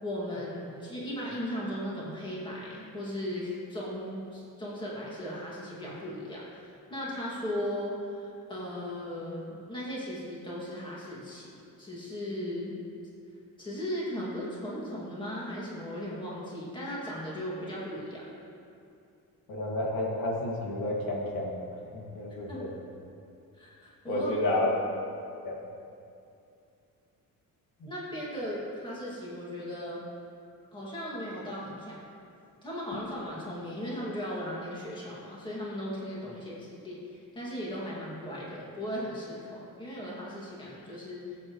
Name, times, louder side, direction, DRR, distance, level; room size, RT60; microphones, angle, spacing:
voice 1, 0.0-12.7 13.6-18.2 22.5-22.7 23.5-24.3 27.9-30.0 30.7-32.0 32.6-41.4, equal, 15° left, -7 dB, 2.4 m, -37 dB
voice 2, 19.5-21.6 21.9-22.7 24.1-24.7 25.4-25.5, left 1 dB, 75° left, -3 dB, 2.5 m, -30 dB
19.0 x 8.5 x 3.2 m, 2.6 s
cardioid pair, 165°, 34 cm